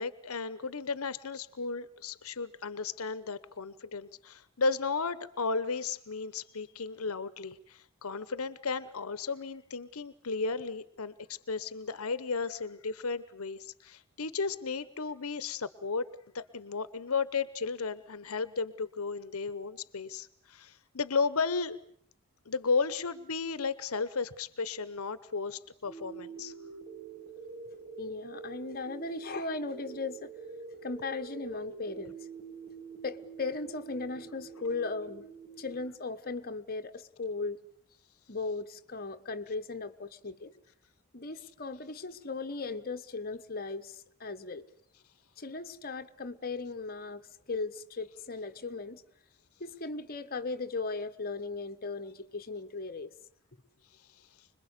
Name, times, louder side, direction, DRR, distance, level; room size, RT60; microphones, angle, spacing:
voice 1, 0.0-16.1 16.3-21.8 22.5-26.5 54.0-54.5, left 4 dB, 80° left, 1.0 m, -34 dB
sound 1, 25.9-35.9, right 5 dB, 35° right, 3.5 m, -46 dB
voice 2, 28.0-30.3 30.8-32.2 33.0-35.3 35.6-37.6 38.3-40.5 41.1-44.7 45.4-47.2 47.5-49.0 49.6-53.1, left 3 dB, 45° left, 1.3 m, -37 dB
26.0 x 22.0 x 8.3 m
head